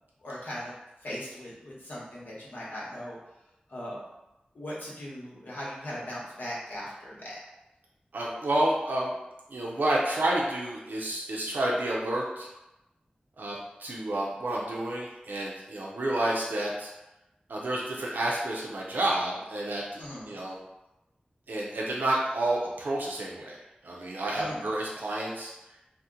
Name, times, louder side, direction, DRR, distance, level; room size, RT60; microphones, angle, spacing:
voice 1, 0.2-0.7 1.0-3.2 3.7-4.0 4.5-7.4 20.0-20.3 24.4-24.7, left 1 dB, 85° left, -6 dB, 1.0 m, -39 dB
voice 2, 8.1-9.1 9.5-12.5 13.4-16.9 17.5-20.0 20.3-20.6 21.5-25.5, right 1 dB, 85° right, -3 dB, 0.5 m, -30 dB
2.8 x 2.1 x 3.7 m, 0.95 s
wide cardioid pair, 75°, 3 cm